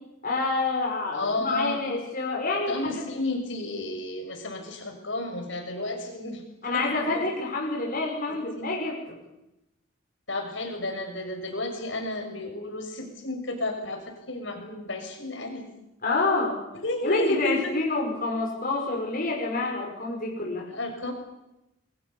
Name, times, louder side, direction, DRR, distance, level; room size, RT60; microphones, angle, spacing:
voice 1, 0.2-2.8 6.6-9.0 16.0-16.6 17.0-20.7, left 3 dB, 45° left, -1 dB, 5.9 m, -27 dB
voice 2, 1.1-1.8 2.7-6.4 6.7-7.3 8.3-8.8 10.3-15.7 16.8-17.7 20.7-21.1, left 2 dB, 70° left, 4 dB, 6.6 m, -32 dB
29.0 x 22.0 x 7.1 m, 0.92 s
head